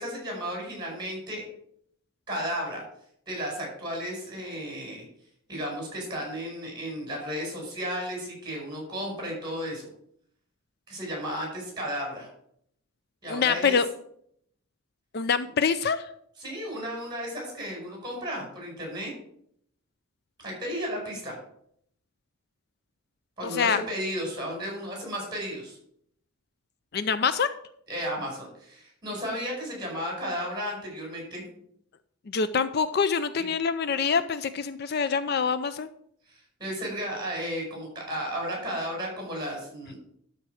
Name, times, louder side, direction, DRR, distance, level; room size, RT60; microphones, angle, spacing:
voice 1, 0.0-1.4 2.3-2.8 3.3-5.0 5.5-9.9 10.9-12.3 13.2-13.8 16.4-19.1 20.4-21.4 23.4-25.8 27.9-31.4 33.3-33.5 35.0-35.1 36.3-40.0, equal, 20° right, -1 dB, 5.1 m, -34 dB
voice 2, 13.3-13.9 15.1-16.0 23.5-23.8 26.9-27.5 32.3-35.9, left 6 dB, 50° left, 13 dB, 0.4 m, -25 dB
12.5 x 4.6 x 6.4 m, 0.69 s
head